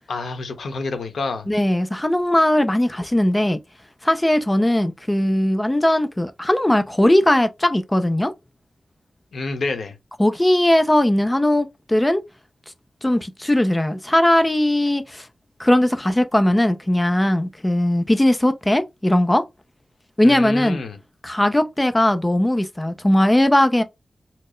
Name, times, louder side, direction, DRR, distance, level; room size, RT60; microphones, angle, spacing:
voice 1, 0.1-1.5 9.3-9.9 20.2-21.0, left 3 dB, 80° left, 1.0 m, -28 dB
voice 2, 1.5-3.6 4.0-8.3 10.2-12.2 13.0-15.3 15.6-19.4 20.2-20.8 21.2-23.8, left 1 dB, 10° left, 0.4 m, -19 dB
4.3 x 2.0 x 3.1 m
wide cardioid pair, 135°, 0 cm